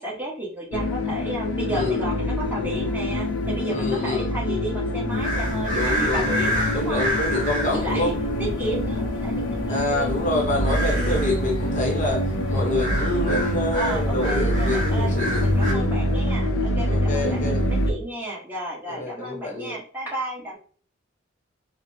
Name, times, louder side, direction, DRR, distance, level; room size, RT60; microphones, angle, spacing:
voice 1, 0.0-7.0 7.7-8.1 8.4-11.4 12.7-13.0 13.7-15.1 15.4-20.5, right 1 dB, 10° right, -6 dB, 1.1 m, -33 dB
sound 1, 0.7-17.9, equal, 80° left, 0.6 m, -25 dB
voice 2, 1.7-2.0 3.7-4.3 5.7-6.4 6.7-8.1 9.7-15.9 16.9-17.6 18.9-19.8, left 2 dB, 40° left, -1 dB, 0.8 m, -27 dB
sound 2, 5.1-15.7, equal, 40° right, 0.9 m, -30 dB
4.1 x 2.0 x 2.7 m, 0.43 s
head